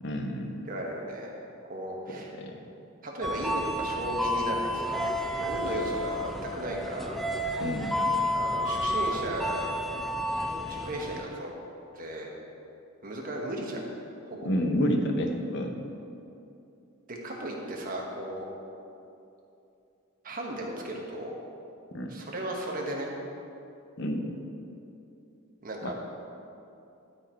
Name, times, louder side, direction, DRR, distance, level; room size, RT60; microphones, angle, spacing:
voice 1, 0.0-0.7 2.4-2.5 7.6-7.9 14.4-15.8 21.9-22.1 24.0-24.3 25.8-25.9, equal, 55° left, 4 dB, 0.8 m, -29 dB
voice 2, 0.7-1.3 1.7-2.3 3.0-5.0 5.4-7.2 8.2-9.7 10.7-11.5 11.9-12.3 13.0-13.8 14.2-14.5 17.1-18.5 20.2-21.4 22.1-23.1 25.6-25.9, right 1 dB, 45° right, -1 dB, 1.2 m, -35 dB
sound 1, 3.2-11.2, equal, ahead, 0.3 m, -31 dB
12.0 x 4.6 x 4.4 m, 2.7 s
head